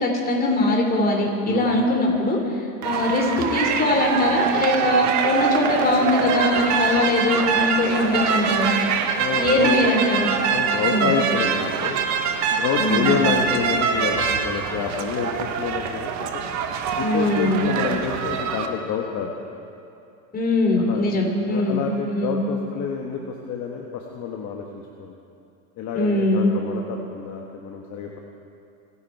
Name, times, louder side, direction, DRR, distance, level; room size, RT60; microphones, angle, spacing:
voice 1, 0.0-2.5 2.8-8.7 9.4-10.3 10.8-11.1 12.8-13.1 17.0-17.6 20.3-21.8 22.1-22.4 25.9-26.5, left 2 dB, 20° left, 1 dB, 3.2 m, -21 dB
voice 2, 1.5-1.8 9.1-9.7 10.5-12.0 12.5-16.4 17.0-19.3 20.7-21.1 21.5-25.2 25.8-28.2, left 7 dB, 40° left, 0 dB, 1.5 m, -28 dB
sound 1, 2.8-18.7, right 6 dB, 40° right, 1.4 m, -24 dB
27.0 x 10.0 x 4.7 m, 2.6 s
supercardioid pair, 125°, 43 cm